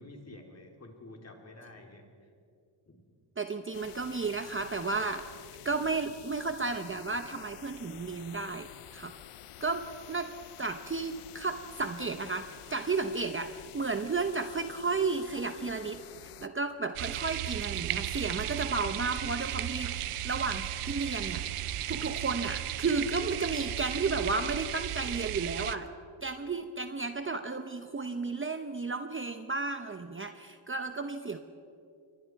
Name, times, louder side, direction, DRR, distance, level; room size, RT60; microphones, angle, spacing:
voice 1, 0.0-2.1 2.9-3.0, left 2 dB, 30° left, 2 dB, 3.6 m, -49 dB
voice 2, 3.4-5.3 5.6-9.1 9.6-10.3 10.6-25.9 26.2-31.4, right 4 dB, 25° right, 8 dB, 0.9 m, -33 dB
sound 1, 3.7-16.5, left 12 dB, 85° left, 0.9 m, -50 dB
sound 2, 17.0-25.8, right 12 dB, 85° right, 0.9 m, -35 dB
28.0 x 23.5 x 4.7 m, 2.5 s
cardioid pair, 110°, 50 cm